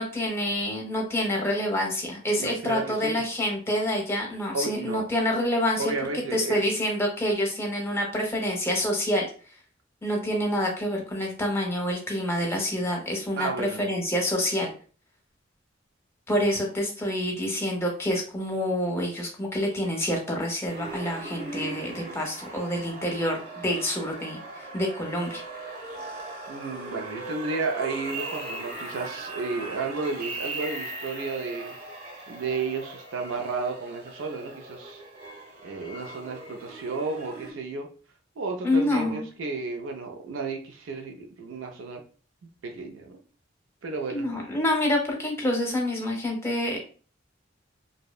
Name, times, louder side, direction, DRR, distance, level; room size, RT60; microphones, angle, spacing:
voice 1, 0.0-5.8 6.3-9.3 10.0-14.7 16.3-25.4 38.6-39.2 44.1-46.8, left 1 dB, 15° left, 0 dB, 0.6 m, -27 dB
voice 2, 2.4-3.2 4.5-5.0 5.8-6.6 13.4-13.8 26.5-31.8 32.3-35.0 35.6-37.9 38.4-42.0 42.4-43.2 43.8-44.3, right 3 dB, 90° right, 4 dB, 0.4 m, -32 dB
sound 1, 20.7-37.5, right 2 dB, 55° right, 0.9 m, -39 dB
2.7 x 2.0 x 2.3 m, 0.39 s
head